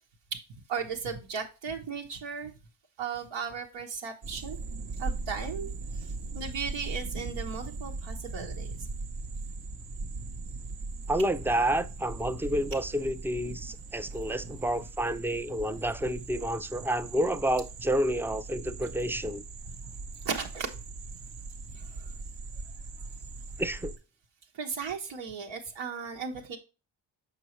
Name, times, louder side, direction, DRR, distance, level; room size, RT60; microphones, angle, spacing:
voice 1, 0.7-2.5 3.0-4.6 5.0-5.7 5.9-6.1 6.3-8.8 12.3-12.6 14.4-14.6 20.2-20.7 21.7-22.0 24.5-26.6, right 6 dB, 90° right, 1.2 m, -36 dB
sound 1, 4.2-24.0, right 3 dB, 60° right, 0.9 m, -39 dB
voice 2, 11.1-19.4 23.6-23.9, right 1 dB, 5° right, 0.3 m, -29 dB
6.8 x 5.4 x 3.1 m
cardioid pair, 110°, 45 cm